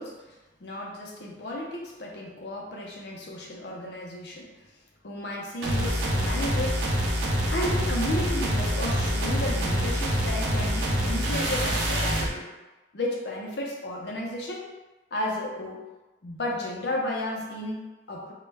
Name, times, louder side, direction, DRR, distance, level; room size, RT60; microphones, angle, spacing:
voice 1, 0.0-4.5 5.0-7.0 7.5-12.5 12.9-14.7 15.1-15.8 16.2-18.3, left 1 dB, 60° left, -2 dB, 0.5 m, -33 dB
sound 1, 5.6-12.3, equal, 75° right, 0.5 m, -26 dB
2.2 x 2.1 x 3.2 m, 1.1 s
head